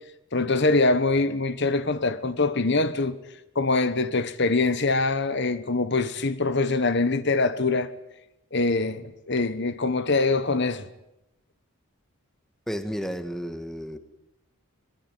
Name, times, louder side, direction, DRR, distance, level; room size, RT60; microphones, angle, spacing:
voice 1, 0.3-3.1 3.5-7.9 8.5-10.8, left 3 dB, 55° left, 1.2 m, -24 dB
voice 2, 12.7-14.0, equal, ahead, 1.6 m, -32 dB
24.0 x 23.0 x 9.2 m
head